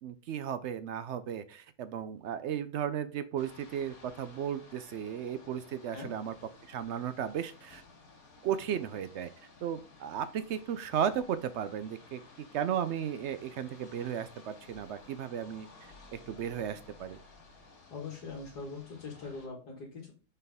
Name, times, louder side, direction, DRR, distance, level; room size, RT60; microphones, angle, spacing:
voice 1, 0.0-6.3 6.7-7.8 8.4-9.3 9.6-12.2 12.5-15.7 16.1-17.2, right 9 dB, 75° right, 13 dB, 0.6 m, -35 dB
sound 1, 3.4-19.5, left 3 dB, 60° left, 2.7 m, -55 dB
voice 2, 17.9-20.1, left 4 dB, 80° left, -3 dB, 2.2 m, -42 dB
6.6 x 4.6 x 3.5 m, 0.36 s
omnidirectional pair, 1.7 m